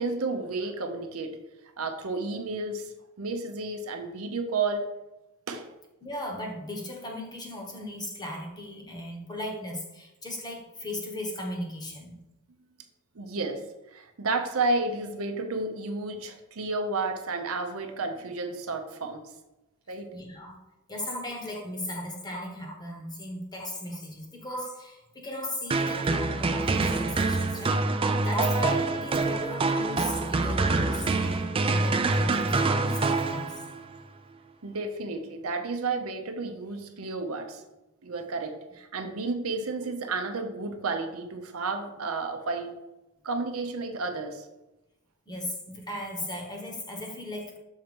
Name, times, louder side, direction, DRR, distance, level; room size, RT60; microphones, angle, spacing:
voice 1, 0.0-1.4 1.8-4.9 5.5-5.7 13.1-13.6 13.9-19.3 19.9-20.1 34.6-37.6 38.0-42.7 43.2-44.5, right 3 dB, 70° right, 5 dB, 0.7 m, -31 dB
voice 2, 6.0-12.2 20.1-20.6 20.9-33.6 45.3-47.6, left 1 dB, 20° left, 1 dB, 1.0 m, -37 dB
sound 1, 25.7-33.8, right 3 dB, 25° right, 0.3 m, -26 dB
6.6 x 2.9 x 5.1 m, 0.97 s
head